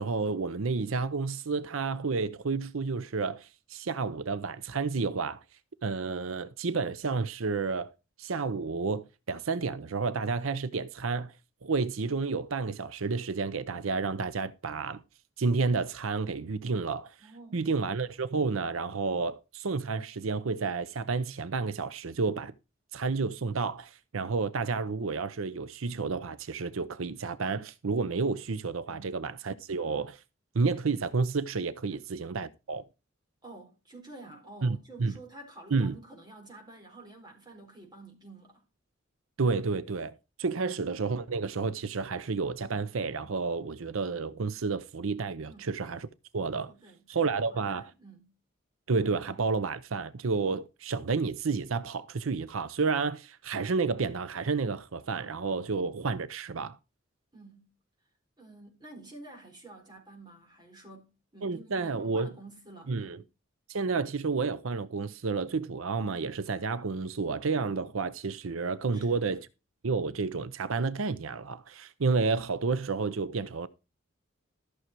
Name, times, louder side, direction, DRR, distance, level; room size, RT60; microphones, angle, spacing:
voice 1, 0.0-5.4 5.8-7.9 8.2-11.3 11.6-15.0 15.4-22.5 22.9-30.2 30.5-32.8 34.6-35.1 35.7-35.9 39.4-46.1 46.3-46.7 47.1-47.9 48.9-56.8 61.4-62.3 62.9-63.2 63.7-69.5 69.8-73.7, right 4 dB, 85° right, 0.7 m, -30 dB
voice 2, 17.2-17.6 28.9-29.1 31.9-32.0 33.4-38.6 45.5-45.7 46.7-48.3 57.3-57.7 58.4-63.2 68.8-69.2, right 2 dB, 20° right, 4.4 m, -50 dB
14.0 x 6.5 x 4.5 m
head